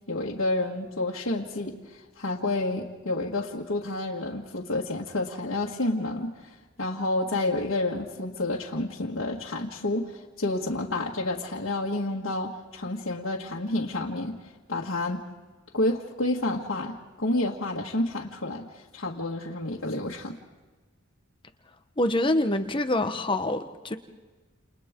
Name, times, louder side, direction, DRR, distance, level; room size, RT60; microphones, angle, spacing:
voice 1, 0.1-14.4 14.7-15.2 15.7-20.4, left 2 dB, 75° left, -5 dB, 1.8 m, -29 dB
voice 2, 22.0-23.6 23.8-24.0, left 1 dB, 25° left, 7 dB, 1.0 m, -25 dB
29.5 x 29.0 x 3.7 m, 1.3 s
head